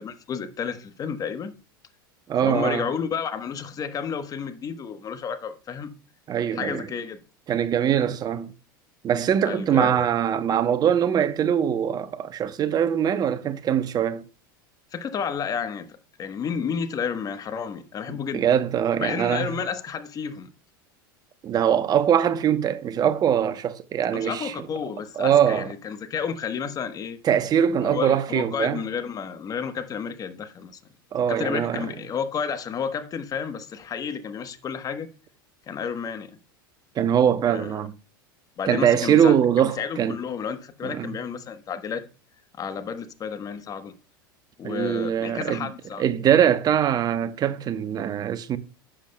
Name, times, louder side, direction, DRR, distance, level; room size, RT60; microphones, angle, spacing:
voice 1, 0.0-1.5 2.4-5.9 6.5-7.2 9.4-10.1 14.9-18.5 19.0-20.5 24.1-27.2 27.8-30.8 31.3-35.1 35.7-36.4 37.5-37.9 38.6-42.1 42.6-43.9 44.6-46.0, left 7 dB, 30° left, 1.1 m, -31 dB
voice 2, 2.3-2.9 6.3-6.9 7.5-8.5 9.0-14.2 18.1-19.5 21.4-24.5 25.2-25.7 27.2-28.8 31.1-31.9 37.0-37.9 38.7-40.2 40.8-41.2 44.6-45.7 46.0-48.6, right 9 dB, 35° right, 0.9 m, -22 dB
11.5 x 7.3 x 2.2 m
hypercardioid pair, 90°, 12 cm